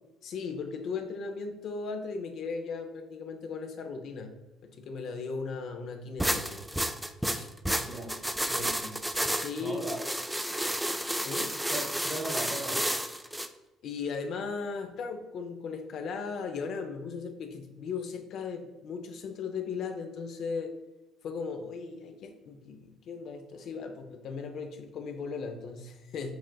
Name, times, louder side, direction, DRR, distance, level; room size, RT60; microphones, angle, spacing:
voice 1, 0.2-6.7 7.2-7.5 8.6-8.7 9.4-9.8 11.2-11.5 13.8-20.7 21.2-26.3, left 5 dB, 65° left, 5 dB, 0.5 m, -37 dB
sound 1, 6.2-13.5, right 1 dB, 5° right, 0.3 m, -31 dB
voice 2, 7.8-8.1 8.5-9.0 9.6-10.0 11.7-12.8, right 1 dB, 30° right, 2 dB, 1.1 m, -38 dB
6.0 x 2.5 x 2.2 m, 1.1 s
supercardioid pair, 85°, 0 cm